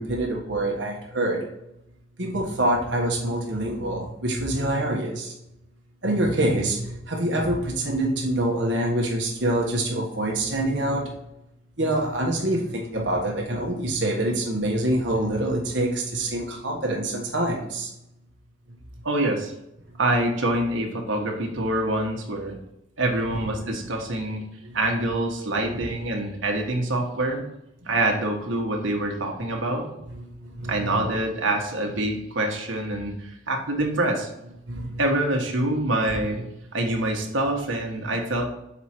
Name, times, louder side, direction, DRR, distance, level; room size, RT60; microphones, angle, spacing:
voice 1, 0.0-1.5 2.2-5.3 6.0-11.0 11.8-17.9 24.6-24.8 25.7-25.8 30.1-31.0 34.7-35.0, right 1 dB, 65° right, -1 dB, 1.4 m, -26 dB
voice 2, 19.0-19.5 20.0-22.6 23.0-24.4 24.7-27.4 27.8-29.9 30.7-34.3 35.0-36.4 36.7-38.5, right 1 dB, 90° right, 1 dB, 1.5 m, -25 dB
6.6 x 4.9 x 4.4 m, 0.83 s
head